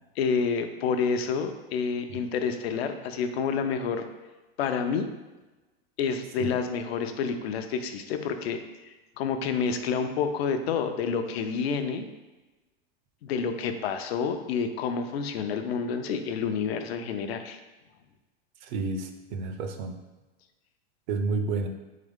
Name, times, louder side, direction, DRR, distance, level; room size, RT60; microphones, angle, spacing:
voice 1, 0.2-4.1 4.6-5.1 6.0-12.1 13.2-17.6, left 6 dB, 85° left, 7 dB, 0.6 m, -29 dB
voice 2, 18.7-20.0 21.1-21.7, right 4 dB, 50° right, 7 dB, 0.5 m, -30 dB
3.7 x 3.6 x 3.5 m, 1.1 s
supercardioid pair, 160°, 30 cm